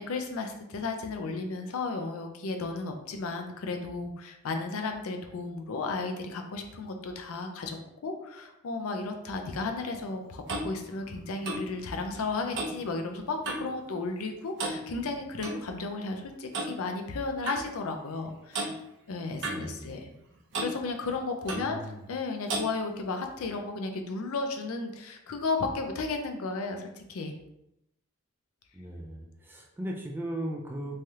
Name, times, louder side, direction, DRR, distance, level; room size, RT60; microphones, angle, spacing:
voice 1, 0.0-18.8 19.1-20.1 20.6-27.3, left 3 dB, 70° left, 5 dB, 0.4 m, -34 dB
Clock, 9.9-13.8 14.0-14.3 14.6-15.6 16.5-16.7 17.5-17.6 18.5-18.7 19.4-20.2 20.5-20.8 21.5-21.7 22.5-22.7, right 2 dB, 55° right, 0.7 m, -35 dB
voice 2, 19.4-20.0 21.5-22.0 28.7-31.0, right 1 dB, 10° right, 0 dB, 0.3 m, -37 dB
3.2 x 2.3 x 2.7 m, 0.83 s
head